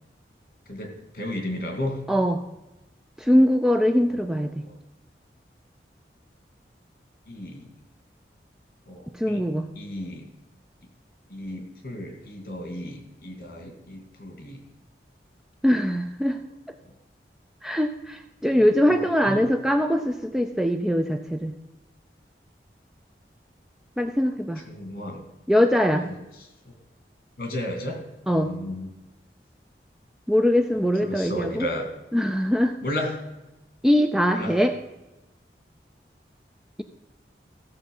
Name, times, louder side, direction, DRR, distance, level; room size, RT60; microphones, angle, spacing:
voice 1, 0.7-2.0 4.1-4.2 4.6-4.7 7.3-7.7 8.9-9.4 9.8-10.3 11.3-14.6 18.5-18.6 18.9-19.5 24.7-25.2 26.1-26.2 27.4-28.0 28.3-28.9 31.0-31.9 32.8-33.2 34.3-34.5, left 1 dB, 55° left, 3 dB, 2.4 m, -33 dB
voice 2, 2.1-2.4 3.2-4.6 9.1-9.7 15.6-16.4 17.6-21.5 24.0-24.6 25.5-26.1 28.3-28.5 30.3-31.7 32.1-32.7 33.8-34.8, equal, 5° right, 6 dB, 0.4 m, -22 dB
15.0 x 6.9 x 5.4 m, 1.0 s
head